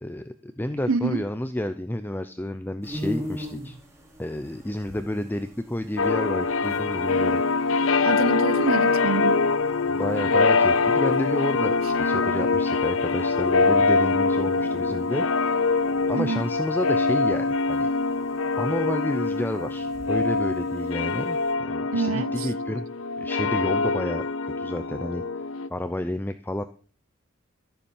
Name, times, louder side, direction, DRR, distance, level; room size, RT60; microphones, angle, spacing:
voice 1, 0.0-3.8 4.2-7.4 9.9-15.3 16.1-17.9 18.6-22.8 23.2-25.2 25.7-26.6, left 1 dB, 10° left, 0.6 m, -30 dB
voice 2, 0.9-1.2 8.0-9.4 16.1-16.4 21.9-22.5, right 4 dB, 85° right, 0.7 m, -26 dB
sound 1, 2.8-21.5, equal, 15° right, 3.6 m, -44 dB
sound 2, 6.0-25.7, left 4 dB, 75° left, 0.7 m, -24 dB
13.5 x 7.2 x 7.1 m
head